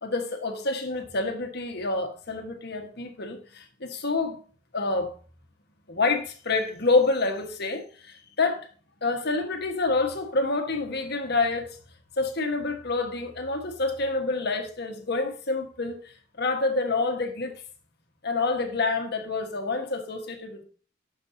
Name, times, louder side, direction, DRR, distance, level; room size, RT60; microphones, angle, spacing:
voice 1, 0.0-4.4 4.7-5.1 5.9-8.6 9.0-11.7 12.2-16.0 16.4-17.5 18.2-20.6, left 3 dB, 60° left, 1.5 m, -27 dB
9.7 x 7.1 x 2.8 m
head